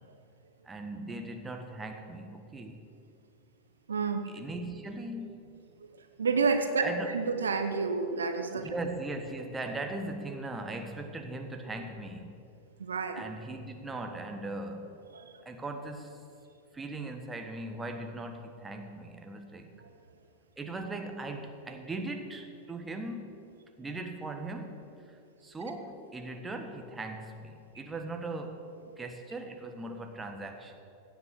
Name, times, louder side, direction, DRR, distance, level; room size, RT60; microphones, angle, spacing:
voice 1, 0.6-2.8 4.3-5.5 6.8-7.1 8.6-12.3 13.1-15.0 15.4-16.2 16.7-19.8 20.6-23.4 23.8-24.8 25.1-30.8, right 2 dB, 15° right, 5 dB, 1.3 m, -39 dB
voice 2, 3.9-4.2 6.0-6.9 7.1-8.7 12.8-13.2 15.1-15.4 19.8-19.9, right 4 dB, 70° right, 7 dB, 0.9 m, -29 dB
16.5 x 8.4 x 6.3 m, 2.5 s
figure-of-eight pair, 90°, 0 cm